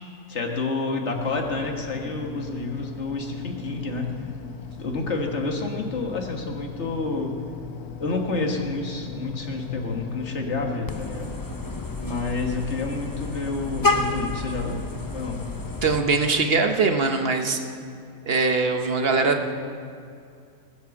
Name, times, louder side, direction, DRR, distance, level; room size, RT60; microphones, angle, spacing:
voice 1, 0.3-4.1 4.8-7.3 8.0-11.3 12.0-14.8 15.1-15.4, left 3 dB, 50° left, 2 dB, 1.8 m, -29 dB
sound 1, 1.1-15.8, left 8 dB, 80° left, 1.3 m, -38 dB
Vehicle horn car horn honking, 10.9-16.0, left 2 dB, 20° left, 0.5 m, -30 dB
voice 2, 15.8-17.6 18.2-19.5, right 4 dB, 45° right, 5 dB, 1.1 m, -22 dB
19.5 x 7.8 x 7.1 m, 2.4 s
omnidirectional pair, 1.6 m